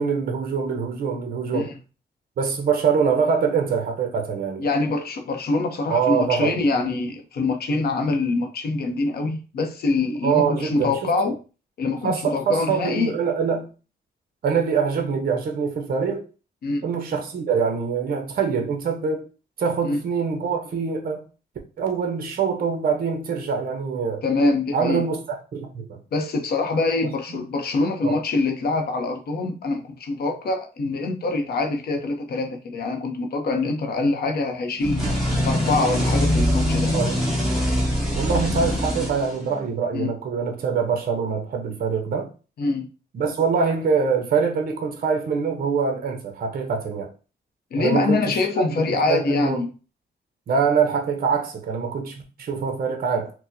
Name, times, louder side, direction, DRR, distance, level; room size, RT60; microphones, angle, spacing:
voice 1, 0.0-1.7 2.4-4.6 5.9-6.6 10.2-11.0 12.0-13.7 14.4-16.2 16.8-19.3 19.6-21.2 21.8-24.2 24.7-25.2 25.5-26.0 27.3-27.4 28.0-28.2 36.7-37.2 38.1-42.3 43.1-47.1 47.8-48.4 48.9-49.6 50.5-53.3, right 6 dB, 55° right, 0.7 m, -24 dB
voice 2, 4.6-11.4 11.8-13.1 16.6-16.9 19.8-20.0 24.2-25.0 26.1-36.9 39.9-40.1 42.6-42.9 47.7-49.7, left 3 dB, 60° left, 0.7 m, -24 dB
sound 1, 34.8-39.7, equal, ahead, 1.1 m, -23 dB
4.4 x 2.1 x 2.6 m
wide cardioid pair, 145°, 18 cm